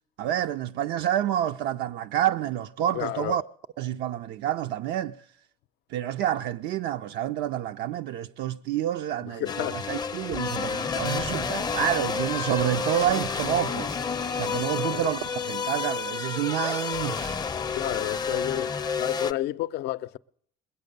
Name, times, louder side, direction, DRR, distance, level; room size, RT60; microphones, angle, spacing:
voice 1, 0.2-3.4 3.8-5.2 5.9-14.0 14.3-17.4, right 11 dB, 80° right, 0.5 m, -28 dB
voice 2, 2.9-3.4 9.3-9.8 14.5-15.1 17.7-20.2, left 15 dB, 80° left, 0.5 m, -31 dB
sound 1, 9.5-19.3, left 5 dB, 25° left, 0.5 m, -30 dB
21.0 x 8.4 x 6.6 m
cardioid pair, 110°, 17 cm